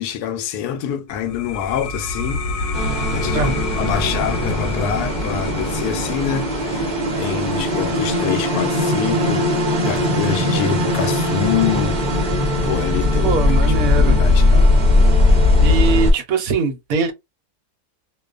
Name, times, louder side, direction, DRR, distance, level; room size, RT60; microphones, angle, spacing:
voice 1, 0.0-9.5 9.8-12.2 12.6-14.8, left 9 dB, 80° left, 1.1 m, -26 dB
sound 1, 1.1-12.3, left 3 dB, 60° left, 0.9 m, -30 dB
sound 2, 2.7-16.1, left 1 dB, 40° right, 0.7 m, -19 dB
voice 2, 13.2-14.2 15.6-17.1, right 4 dB, 70° right, 1.1 m, -21 dB
2.5 x 2.3 x 2.3 m
omnidirectional pair, 1.6 m